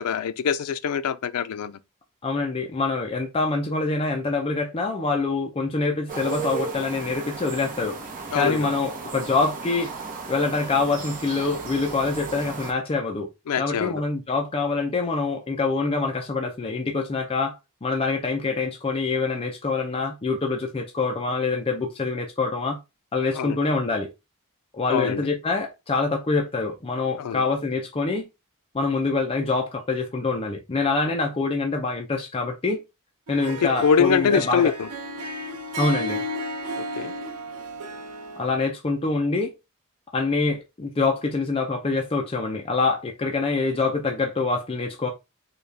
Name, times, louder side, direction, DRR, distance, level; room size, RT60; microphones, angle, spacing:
voice 1, 0.0-1.8 8.3-8.7 13.5-14.0 23.3-23.6 24.9-25.3 27.2-27.4 33.8-34.9 36.8-37.1, left 6 dB, 90° left, 0.4 m, -24 dB
voice 2, 2.2-8.0 8.3-9.9 10.3-13.3 13.6-22.8 23.1-24.1 24.7-28.3 28.7-32.8 33.3-34.7 35.8-36.2 38.4-39.5 40.1-45.1, left 3 dB, 25° left, 0.5 m, -25 dB
sound 1, 6.1-12.7, right 4 dB, 40° right, 0.9 m, -35 dB
Harp, 33.3-38.6, right 1 dB, 75° right, 0.6 m, -33 dB
4.0 x 2.3 x 3.2 m
head